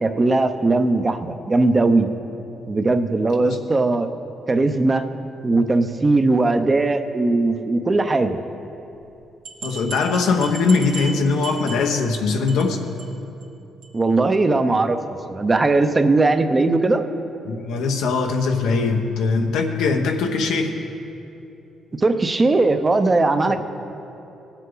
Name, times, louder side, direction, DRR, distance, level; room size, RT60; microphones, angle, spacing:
voice 1, 0.0-2.1 2.7-4.1 4.5-5.0 5.4-8.4 13.9-15.0 15.3-17.0 22.0-23.6, right 2 dB, 25° right, 8 dB, 0.7 m, -19 dB
sound 1, 9.0-9.1 9.4-12.2 12.5-12.7 13.0-13.1 13.4-13.5 13.8-13.9, right 4 dB, 90° right, 1.5 m, -35 dB
voice 2, 9.6-12.8 17.4-20.7, left 4 dB, 85° left, 4 dB, 1.0 m, -21 dB
18.0 x 8.2 x 3.9 m, 2.8 s
cardioid pair, 90°, 0 cm